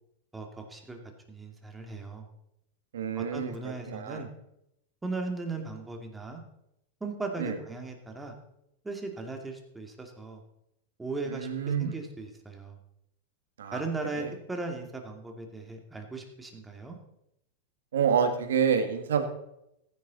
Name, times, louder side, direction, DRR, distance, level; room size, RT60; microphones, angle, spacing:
voice 1, 0.3-1.0 1.3-2.3 3.1-4.3 5.0-6.4 7.0-8.3 8.8-10.4 11.0-11.5 11.8-12.8 13.7-17.0, right 3 dB, 10° right, 3 dB, 2.5 m, -37 dB
voice 2, 2.9-4.2 7.4-7.6 11.3-11.9 13.6-13.8 14.2-14.3 17.9-19.3, right 7 dB, 80° right, 7 dB, 1.9 m, -28 dB
15.0 x 10.0 x 4.1 m, 0.80 s
hypercardioid pair, 115°, 0 cm